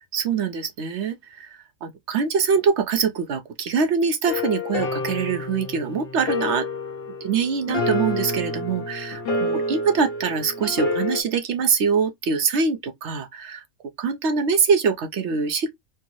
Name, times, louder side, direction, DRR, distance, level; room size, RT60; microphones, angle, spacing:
voice 1, 0.1-6.7 7.2-13.6 14.0-15.7, right 5 dB, 65° right, 0.8 m, -24 dB
sound 1, 4.3-11.2, left 2 dB, 45° left, 1.0 m, -28 dB
4.5 x 2.0 x 2.9 m
omnidirectional pair, 1.5 m